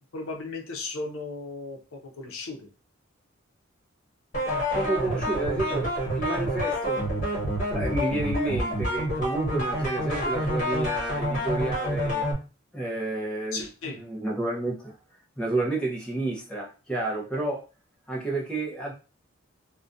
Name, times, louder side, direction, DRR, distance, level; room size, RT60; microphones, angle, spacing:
voice 1, 0.1-2.7 5.6-5.8 13.5-14.0, left 3 dB, 70° left, 2 dB, 0.5 m, -36 dB
sound 1, 4.3-12.3, equal, 40° left, 1.2 m, -28 dB
voice 2, 4.7-7.1 7.7-12.3 12.7-14.9 15.4-17.6 18.1-18.9, right 2 dB, 5° left, -2 dB, 0.5 m, -30 dB
2.4 x 2.1 x 2.5 m, 0.33 s
head